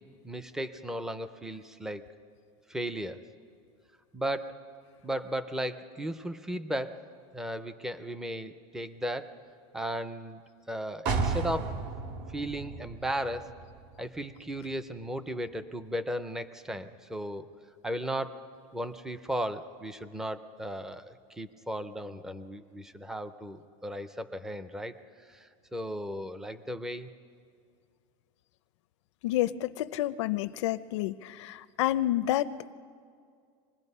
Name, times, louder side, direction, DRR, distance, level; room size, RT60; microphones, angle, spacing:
voice 1, 0.2-2.0 2.7-3.3 4.1-4.7 5.0-9.3 9.7-11.8 12.3-13.5 14.0-17.5 17.8-18.4 18.7-25.0 25.3-27.1, equal, 5° right, 12 dB, 0.4 m, -36 dB
sound 1, 11.1-14.8 15.2-15.3, right 4 dB, 50° right, 1.6 m, -34 dB
voice 2, 29.2-32.5, left 14 dB, 85° left, 12 dB, 0.5 m, -29 dB
25.5 x 20.5 x 5.4 m, 2.2 s
supercardioid pair, 175°, 15 cm